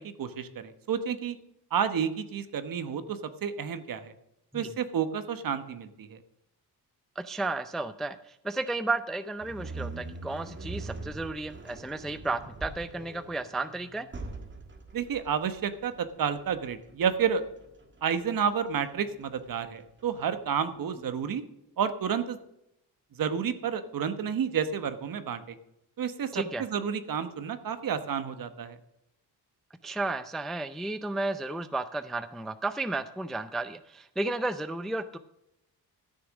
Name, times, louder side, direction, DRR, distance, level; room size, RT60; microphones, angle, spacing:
voice 1, 0.0-1.4 1.7-4.1 4.5-6.2 14.9-17.4 18.0-21.4 21.8-22.4 23.2-25.6 26.0-28.8, right 7 dB, 55° right, 11 dB, 1.2 m, -30 dB
voice 2, 7.2-14.1 26.3-26.6 29.8-35.2, right 2 dB, ahead, 12 dB, 0.4 m, -33 dB
sound 1, 9.4-20.5, right 3 dB, 30° right, 1.6 m, -43 dB
13.0 x 7.0 x 6.2 m, 0.83 s
cardioid pair, 125°, 40 cm